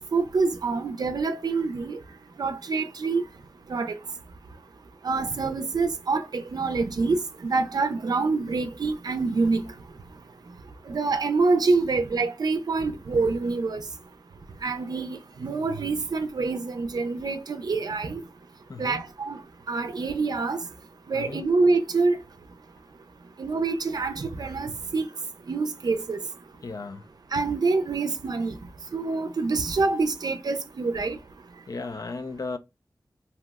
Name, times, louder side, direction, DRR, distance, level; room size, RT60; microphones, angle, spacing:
voice 1, 0.1-2.0 2.4-3.2 3.7-4.0 5.0-9.6 10.9-13.8 14.6-18.2 18.8-19.4 19.7-20.6 21.1-22.2 23.4-25.1 25.5-26.2 27.3-28.5 28.9-31.2, right 3 dB, 65° right, 0.4 m, -26 dB
voice 2, 18.7-19.0 21.1-21.4 26.6-27.1 31.7-32.6, left 3 dB, 55° left, 0.4 m, -35 dB
2.8 x 2.0 x 3.4 m
wide cardioid pair, 60°, 7 cm